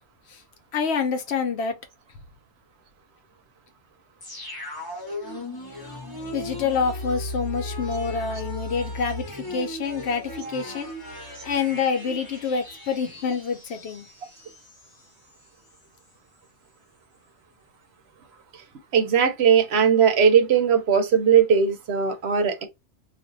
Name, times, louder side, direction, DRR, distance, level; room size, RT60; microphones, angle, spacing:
voice 1, 0.7-1.8 6.3-10.9 11.4-14.1, left 5 dB, 70° left, 0.9 m, -27 dB
sound 1, 4.2-15.0 15.3-15.4, left 1 dB, 20° left, 0.8 m, -36 dB
voice 2, 18.9-22.7, right 7 dB, 70° right, 0.9 m, -19 dB
2.5 x 2.1 x 3.9 m
omnidirectional pair, 1.2 m